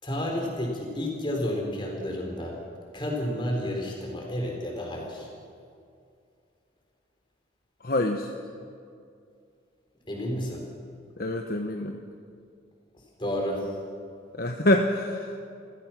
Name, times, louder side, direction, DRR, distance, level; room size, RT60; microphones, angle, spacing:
voice 1, 0.0-2.6 2.9-5.3 10.1-10.6 13.2-13.7, left 1 dB, 25° left, 0 dB, 4.5 m, -31 dB
voice 2, 7.8-8.3 11.2-12.0 14.4-15.4, left 1 dB, 50° left, 4 dB, 1.1 m, -25 dB
27.5 x 15.5 x 6.1 m, 2.4 s
head